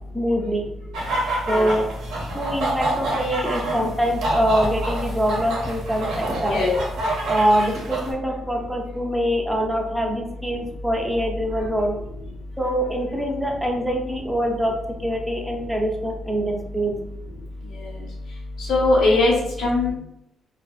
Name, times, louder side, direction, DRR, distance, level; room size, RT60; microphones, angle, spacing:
voice 1, 0.1-0.7 1.5-1.8 2.3-6.6 7.3-11.9 12.6-14.7 15.0-16.9, equal, 5° right, 0 dB, 0.4 m, -24 dB
sound 1, 0.9-8.1, right 2 dB, 85° right, 0.8 m, -27 dB
voice 2, 18.6-19.3 19.6-19.9, left 2 dB, 80° left, -4 dB, 0.8 m, -20 dB
2.5 x 2.2 x 2.3 m, 0.80 s
cardioid pair, 90°, 0 cm